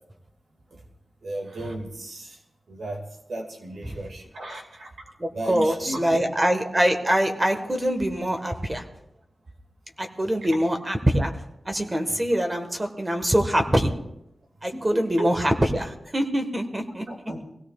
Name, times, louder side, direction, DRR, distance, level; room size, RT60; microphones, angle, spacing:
voice 1, 1.2-2.4 2.7-3.0 3.3-4.9 5.3-6.3 14.7-15.3 17.1-17.4, right 1 dB, 75° right, 1 dB, 2.1 m, -34 dB
voice 2, 5.2-8.8 10.0-11.3 11.6-13.9 14.6-17.0, equal, 20° right, 5 dB, 1.5 m, -24 dB
23.5 x 16.5 x 2.4 m, 0.84 s
wide cardioid pair, 130°, 0 cm